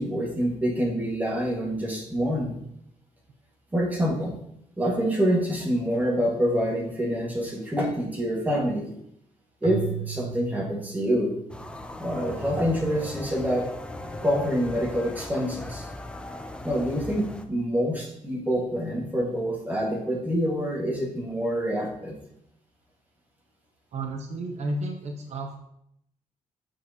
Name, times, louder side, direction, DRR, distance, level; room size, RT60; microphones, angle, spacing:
voice 1, 0.0-2.6 3.7-4.3 4.8-8.9 9.6-11.3 12.0-13.7 14.2-15.9 16.6-22.2, equal, 15° right, -2 dB, 1.6 m, -26 dB
Keyboard (musical), 9.6-11.9, right 10 dB, 80° right, 2.3 m, -36 dB
sound 1, 11.5-17.5, left 1 dB, 10° left, 0.4 m, -38 dB
voice 2, 23.9-25.6, right 2 dB, 60° right, 3 dB, 0.8 m, -32 dB
7.6 x 6.2 x 2.8 m, 0.75 s
wide cardioid pair, 155°, 13 cm